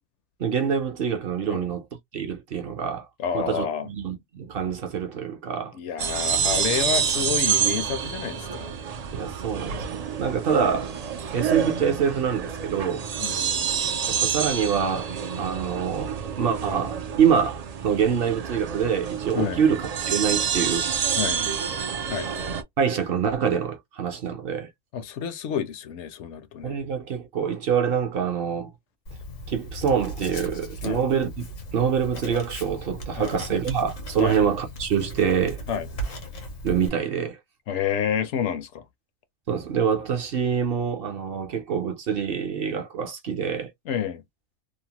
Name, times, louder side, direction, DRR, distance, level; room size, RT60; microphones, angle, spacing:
voice 1, 0.4-1.9 2.1-3.1 3.3-5.7 9.2-10.9 11.3-13.0 14.1-15.1 15.4-20.9 22.8-24.7 26.6-28.7 29.5-31.5 31.7-35.6 36.6-37.4 39.5-43.7, right 7 dB, 60° right, 0.7 m, -25 dB
voice 2, 3.2-3.9 5.7-8.7 13.2-13.8 19.3-19.6 21.2-21.5 22.1-22.3 24.9-26.8 30.8-31.0 33.2-33.4 34.2-34.4 35.7-35.9 37.7-38.8 43.9-44.2, left 8 dB, 70° left, 0.9 m, -29 dB
sound 1, 6.0-22.6, right 7 dB, 90° right, 0.3 m, -28 dB
Writing, 29.1-36.9, right 1 dB, 85° left, 1.3 m, -37 dB
2.8 x 2.0 x 2.8 m
omnidirectional pair, 1.3 m